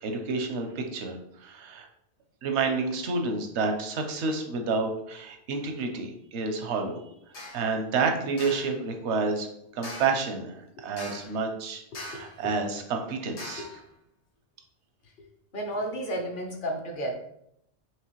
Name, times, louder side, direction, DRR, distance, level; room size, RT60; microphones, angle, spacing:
voice 1, 0.0-1.9 2.4-7.0 7.5-9.5 9.7-13.8, right 4 dB, 85° right, 4 dB, 1.0 m, -29 dB
sound 1, 7.3-7.7 8.4-8.8 9.8-10.3 11.0-11.4 11.9-12.4 13.4-13.8, left 1 dB, 85° left, 1.2 m, -41 dB
voice 2, 15.5-17.1, right 1 dB, 55° left, 2 dB, 0.9 m, -32 dB
4.8 x 3.2 x 3.0 m, 0.74 s
omnidirectional pair, 1.1 m